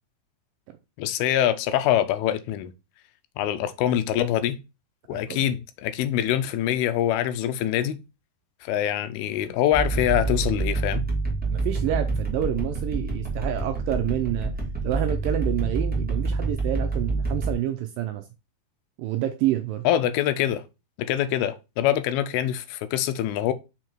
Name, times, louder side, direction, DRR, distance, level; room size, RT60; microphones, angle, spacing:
voice 1, 1.0-2.7 3.4-4.6 5.1-8.0 8.6-11.0 19.8-20.6 21.0-23.5, left 11 dB, 85° left, 2.4 m, -24 dB
voice 2, 5.1-5.5 11.5-14.5 14.8-18.2 19.0-19.8, right 12 dB, 80° right, 2.0 m, -28 dB
sound 1, 9.7-17.5, right 3 dB, 10° right, 0.4 m, -27 dB
5.8 x 4.7 x 4.5 m
omnidirectional pair, 4.5 m